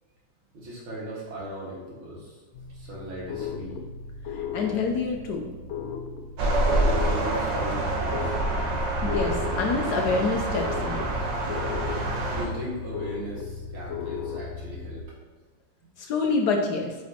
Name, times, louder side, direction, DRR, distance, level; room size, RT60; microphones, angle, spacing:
voice 1, 0.5-2.4 2.7-3.8 6.6-8.3 12.3-15.0 15.8-15.9, right 1 dB, 85° right, -4 dB, 2.7 m, -38 dB
sound 1, 2.5-15.0, left 6 dB, 90° left, 1.5 m, -36 dB
voice 2, 4.4-5.5 9.0-11.0 16.0-17.0, left 4 dB, 65° left, 2 dB, 1.2 m, -27 dB
sound 2, 6.4-12.5, right 2 dB, 65° right, 1.6 m, -26 dB
8.6 x 5.2 x 2.9 m, 1.4 s
omnidirectional pair, 2.2 m